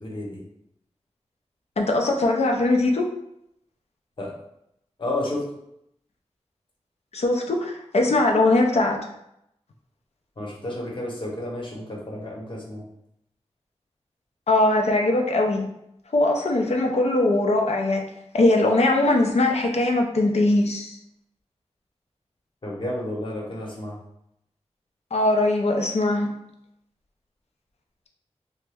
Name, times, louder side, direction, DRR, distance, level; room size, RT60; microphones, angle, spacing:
voice 1, 0.0-0.4 4.2-4.3 5.0-5.4 10.4-12.8 22.6-24.0, left 1 dB, 50° left, -4 dB, 1.0 m, -31 dB
voice 2, 1.8-3.1 7.1-9.0 14.5-15.7 16.1-18.0 18.3-21.0 25.1-26.3, left 2 dB, 70° left, 1 dB, 0.5 m, -21 dB
2.9 x 2.2 x 3.4 m, 0.78 s
wide cardioid pair, 90°, 11 cm